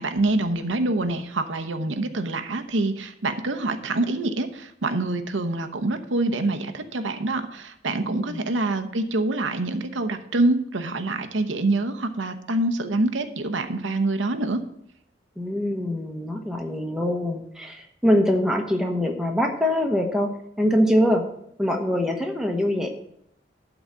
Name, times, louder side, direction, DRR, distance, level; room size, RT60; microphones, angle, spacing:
voice 1, 0.0-14.6, right 2 dB, 90° right, 7 dB, 0.9 m, -26 dB
voice 2, 7.9-8.5 15.4-20.3 20.6-21.2 21.6-22.9, equal, 5° right, 2 dB, 1.0 m, -23 dB
12.0 x 4.0 x 7.3 m, 0.73 s
head